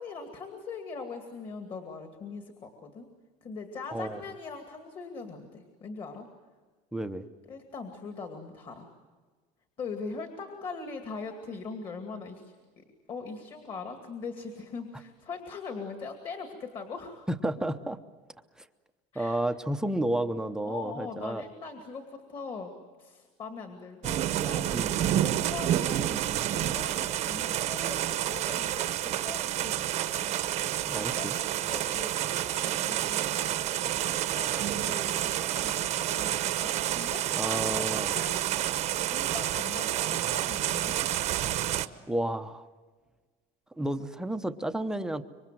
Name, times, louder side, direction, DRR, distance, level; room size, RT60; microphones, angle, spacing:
voice 1, 0.0-3.1 3.4-6.3 7.5-8.9 9.8-12.5 13.1-17.3 19.1-19.4 19.9-20.0 20.7-24.8 25.1-30.3 30.9-38.6 39.0-41.2, left 4 dB, 35° left, 5 dB, 2.4 m, -41 dB
voice 2, 6.9-7.3 17.3-18.0 19.1-21.4 24.7-25.0 30.9-31.3 37.4-38.2 42.1-42.6 43.8-45.2, right 1 dB, 5° right, 7 dB, 0.7 m, -31 dB
Thunder and Rain, 24.0-41.9, right 12 dB, 45° right, 1.0 m, -29 dB
26.5 x 24.0 x 7.7 m, 1.4 s
cardioid pair, 160°, 16 cm